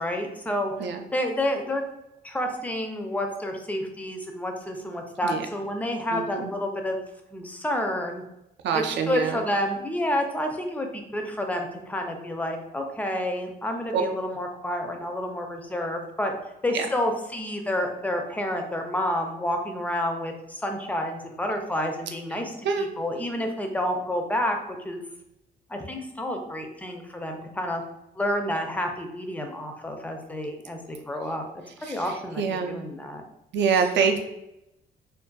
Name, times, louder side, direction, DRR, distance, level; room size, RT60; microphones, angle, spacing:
voice 1, 0.0-0.7 1.1-1.8 2.2-7.0 7.3-8.2 8.7-16.3 16.6-25.0 25.7-27.8 28.2-31.4 31.8-33.2 33.7-33.9, left 1 dB, 10° left, 3 dB, 0.4 m, -29 dB
voice 2, 6.1-6.5 8.6-9.4 13.9-14.0 16.7-16.8 22.7-22.9 32.4-32.8 33.5-34.2, right 6 dB, 65° right, 5 dB, 0.4 m, -24 dB
2.5 x 2.2 x 2.2 m, 0.85 s
cardioid pair, 90°, 20 cm